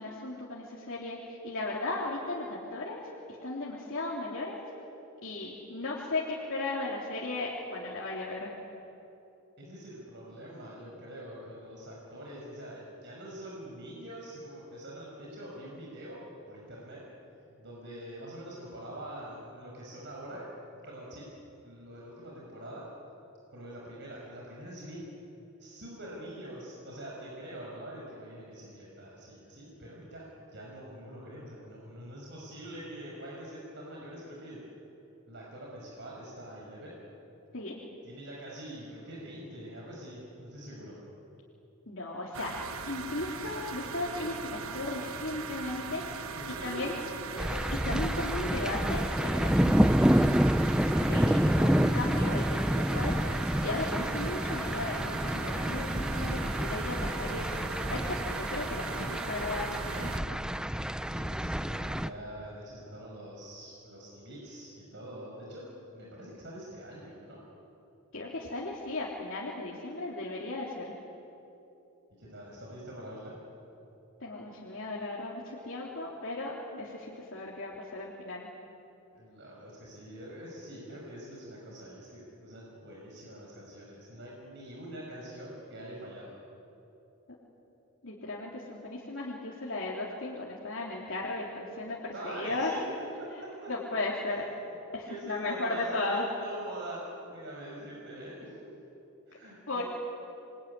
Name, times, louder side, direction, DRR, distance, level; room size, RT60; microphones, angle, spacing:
voice 1, 0.0-3.0 3.4-4.6 5.2-8.5 37.5-37.8 41.9-42.5 42.8-46.9 47.3-50.4 50.8-53.2 53.6-60.4 68.1-70.9 74.2-78.5 88.0-92.7 93.7-94.5 94.9-96.2 99.7-99.8, left 2 dB, 65° left, -5 dB, 3.5 m, -36 dB
voice 2, 9.6-17.0 17.6-20.4 20.7-21.3 21.6-22.8 23.5-25.1 25.6-34.6 35.3-37.0 38.0-41.0 46.3-46.9 61.0-65.7 65.9-67.4 72.2-73.4 79.1-86.4 92.1-92.8 93.4-93.7 94.6-94.7 95.1-98.5 99.3-99.8, right 1 dB, 55° right, -3 dB, 5.6 m, -44 dB
sound 1, 42.3-60.2, right 6 dB, 75° right, 1.2 m, -40 dB
sound 2, 47.4-62.1, equal, 5° right, 0.5 m, -28 dB
28.0 x 22.0 x 9.8 m, 2.9 s
head